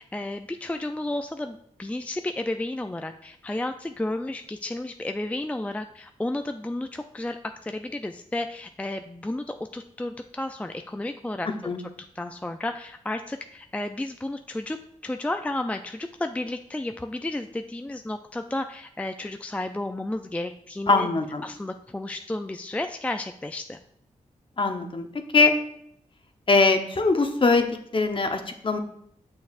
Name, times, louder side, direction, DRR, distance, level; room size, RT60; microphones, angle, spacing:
voice 1, 0.0-11.5 12.2-14.8 15.0-21.1 21.4-23.8, left 1 dB, 10° left, 6 dB, 0.4 m, -32 dB
voice 2, 11.5-11.8 20.9-21.4 24.6-25.1 25.3-25.6 26.5-28.8, left 3 dB, 40° left, 6 dB, 0.9 m, -22 dB
6.9 x 6.4 x 2.4 m, 0.68 s
cardioid pair, 55°, 14 cm